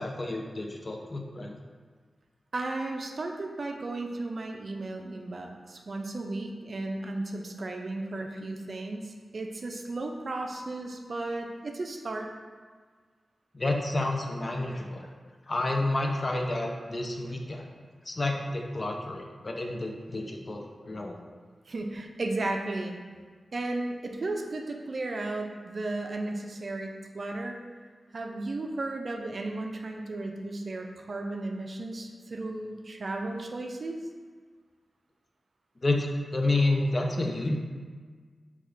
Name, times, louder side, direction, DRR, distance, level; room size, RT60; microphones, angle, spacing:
voice 1, 0.0-1.6 13.5-15.1 15.5-17.7 18.1-21.2 35.8-37.6, left 2 dB, 45° left, 1 dB, 0.4 m, -30 dB
voice 2, 2.5-12.3 21.7-23.0 23.5-27.6 28.1-34.1, right 2 dB, 60° right, 3 dB, 0.3 m, -34 dB
3.6 x 2.3 x 3.1 m, 1.5 s
cardioid pair, 55°, 0 cm